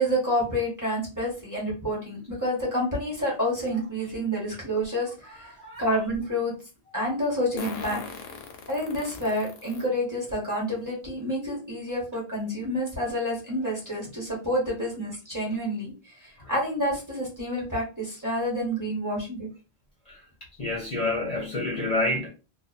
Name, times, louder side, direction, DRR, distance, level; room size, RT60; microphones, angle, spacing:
voice 1, 0.0-6.5 6.9-8.0 8.7-15.9 16.2-19.5, equal, 20° right, 1.1 m, -28 dB
Fart, 4.8-4.9 7.6-9.9 10.5-10.6 11.9-12.0 12.3-12.4 12.9-13.1, left 4 dB, 70° left, 0.8 m, -38 dB
voice 2, 20.6-22.3, left 2 dB, 40° left, 0.7 m, -28 dB
2.5 x 2.3 x 2.5 m
omnidirectional pair, 1.1 m